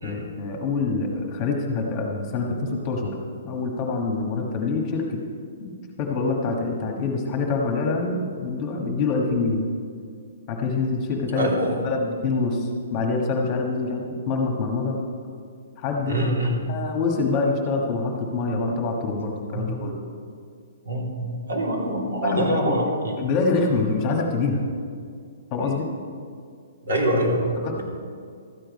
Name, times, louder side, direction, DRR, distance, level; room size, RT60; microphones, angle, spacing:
voice 1, 0.0-3.2 3.4-5.2 5.6-5.7 6.0-9.6 10.5-11.5 11.8-15.0 15.8-16.2 16.7-19.9 22.2-22.8 23.2-24.6 25.5-25.9 27.6-27.7, left 3 dB, 20° left, 1 dB, 1.3 m, -25 dB
voice 2, 11.3-11.8 16.0-16.5 19.2-19.8 20.8-23.1 25.6-25.8 26.8-27.5 27.7-27.8, right 1 dB, 85° right, -1 dB, 3.0 m, -25 dB
13.0 x 9.0 x 5.2 m, 2.2 s
hypercardioid pair, 175°, 0 cm